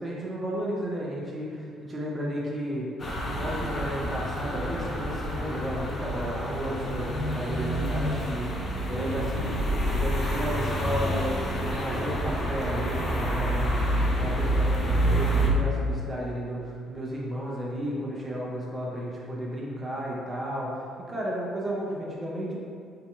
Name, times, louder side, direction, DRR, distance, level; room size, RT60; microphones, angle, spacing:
voice 1, 0.0-2.9 3.2-22.6, equal, 25° right, -4 dB, 0.6 m, -33 dB
sound 1, 3.0-15.5, right 1 dB, 40° left, 0.5 m, -28 dB
2.7 x 2.2 x 2.5 m, 2.2 s
figure-of-eight pair, 45°, 0 cm